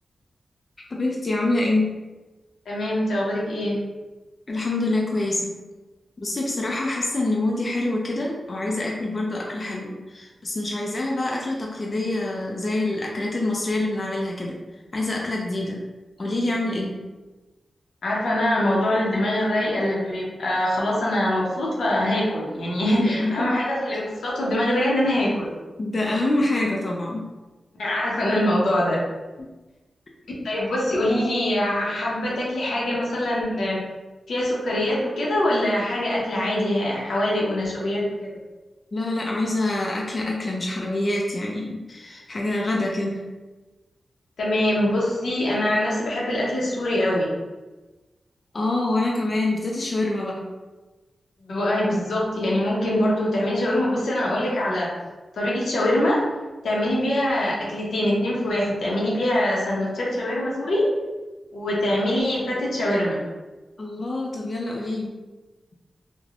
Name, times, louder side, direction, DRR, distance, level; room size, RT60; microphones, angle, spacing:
voice 1, 0.8-1.9 4.5-5.6 6.2-14.6 14.9-15.8 16.2-17.0 22.8-23.5 23.9-24.0 25.8-27.3 29.4-29.5 38.9-43.3 48.5-50.5 63.8-65.1, left 2 dB, 40° left, -2 dB, 0.4 m, -26 dB
voice 2, 2.7-3.8 18.0-25.5 27.7-29.0 30.4-33.8 34.3-38.3 44.4-47.3 51.4-54.9 55.3-56.2 56.6-60.9 61.5-63.2, left 1 dB, 90° left, -5 dB, 0.7 m, -23 dB
3.2 x 2.1 x 2.4 m, 1.2 s
cardioid pair, 75°, 0 cm